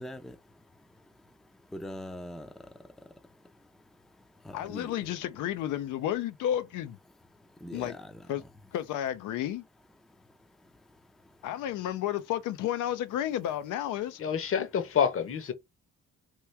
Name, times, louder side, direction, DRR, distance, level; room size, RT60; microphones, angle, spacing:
voice 1, 0.0-5.1 7.1-8.5 10.0-11.5, left 1 dB, ahead, 0.5 m, -46 dB
voice 2, 4.5-7.0 7.7-7.9 8.3-8.4 8.7-9.6 11.4-14.2, left 11 dB, 85° left, 0.5 m, -32 dB
voice 3, 14.2-15.5, left 7 dB, 45° left, 0.8 m, -27 dB
3.0 x 2.3 x 3.2 m
cardioid pair, 90°, 30 cm